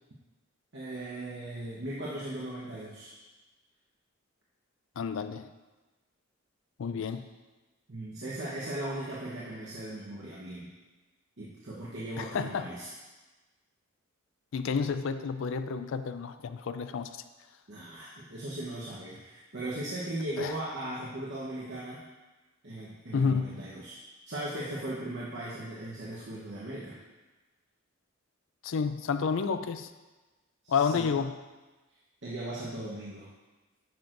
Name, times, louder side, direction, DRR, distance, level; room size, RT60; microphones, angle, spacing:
voice 1, 0.7-3.1 6.9-7.1 7.9-10.7 11.4-12.9 17.7-22.0 22.6-24.0 24.3-27.0 30.6-31.1 32.2-33.3, right 1 dB, 55° right, -6 dB, 1.0 m, -38 dB
voice 2, 5.0-5.5 6.8-7.3 12.2-12.7 14.5-17.1 20.4-20.6 23.1-23.6 28.6-29.9 30.7-31.3, left 5 dB, 60° left, 11 dB, 0.4 m, -30 dB
10.5 x 6.1 x 2.6 m, 1.2 s
head